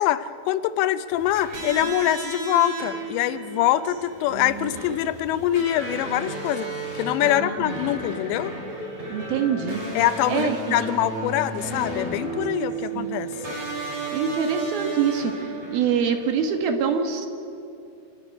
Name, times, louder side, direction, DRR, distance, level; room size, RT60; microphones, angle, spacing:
voice 1, 0.0-6.7 7.0-8.5 9.9-13.3, left 13 dB, 85° left, 13 dB, 2.9 m, -24 dB
sound 1, 1.1-16.3, right 3 dB, 40° right, 7.7 m, -33 dB
voice 2, 4.3-4.8 7.2-7.8 9.1-9.8 10.3-10.9 12.9-13.2 14.1-15.3 15.7-17.3, right 6 dB, 65° right, 5 dB, 3.0 m, -25 dB
26.5 x 14.0 x 9.9 m, 2.6 s
omnidirectional pair, 5.1 m